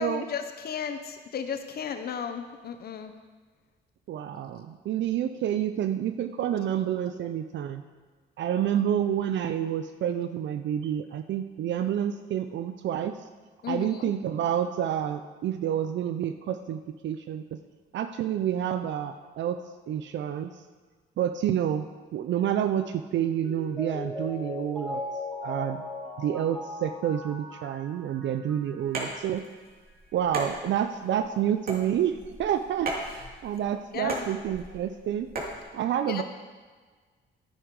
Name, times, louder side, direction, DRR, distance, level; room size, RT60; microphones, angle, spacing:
voice 1, 0.0-3.1 13.6-13.9 33.9-34.2 36.1-36.2, left 7 dB, 50° left, 8 dB, 0.8 m, -34 dB
voice 2, 4.1-7.8 8.4-13.1 13.7-17.4 17.9-19.6 19.9-20.5 21.2-21.9 22.1-25.0 25.4-25.8 26.2-29.4 30.1-35.3 35.7-36.2, right 10 dB, 65° right, 9 dB, 0.5 m, -29 dB
Mallet percussion, 23.4-29.0 29.3-29.4, left 2 dB, 5° left, 1.9 m, -38 dB
sound 1, 28.8-35.6, right 2 dB, 50° right, 2.7 m, -37 dB
10.0 x 9.8 x 4.8 m, 1.4 s
cardioid pair, 90°, 20 cm